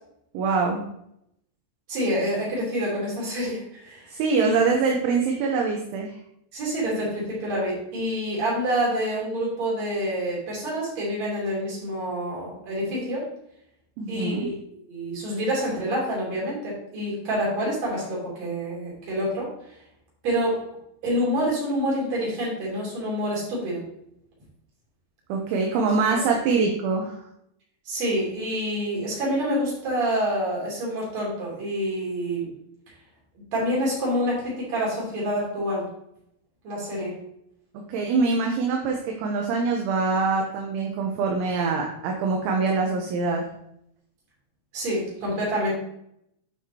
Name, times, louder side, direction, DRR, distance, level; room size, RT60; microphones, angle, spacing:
voice 1, 0.3-0.8 4.1-6.1 14.0-14.5 25.3-27.2 37.9-43.4, right 4 dB, 75° right, 1 dB, 3.0 m, -24 dB
voice 2, 1.9-4.1 4.4-4.5 6.5-13.3 14.1-19.5 20.2-20.6 21.0-23.8 26.0-26.2 27.9-32.5 33.5-35.9 36.6-37.1 44.7-45.7, equal, 35° right, -5 dB, 3.9 m, -27 dB
10.5 x 5.7 x 2.9 m, 0.76 s
omnidirectional pair, 6.0 m